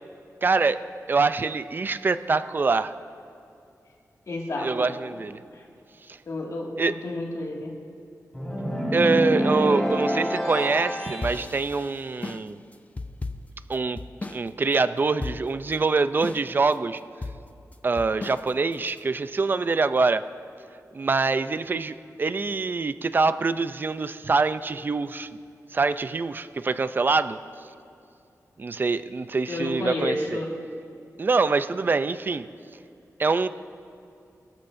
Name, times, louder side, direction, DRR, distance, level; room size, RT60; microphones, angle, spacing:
voice 1, 0.4-0.8 1.1-2.9 4.6-5.4 6.8-6.9 8.9-12.6 13.7-14.0 14.3-17.0 17.8-20.2 20.9-25.3 25.7-27.4 28.6-30.2 31.2-32.5 33.2-33.5, right 4 dB, 35° right, 13 dB, 0.4 m, -24 dB
voice 2, 4.3-5.2 5.5-5.7 6.3-7.7 29.5-30.5, left 2 dB, 65° left, -2 dB, 2.1 m, -31 dB
sound 1, 8.3-11.4, equal, 5° left, 3.7 m, -26 dB
sound 2, 11.2-14.5 14.7-14.8 15.2-15.7 16.2-16.7 17.2-19.0, left 3 dB, 25° left, 0.5 m, -36 dB
23.0 x 13.0 x 2.6 m, 2.6 s
wide cardioid pair, 155°, 6 cm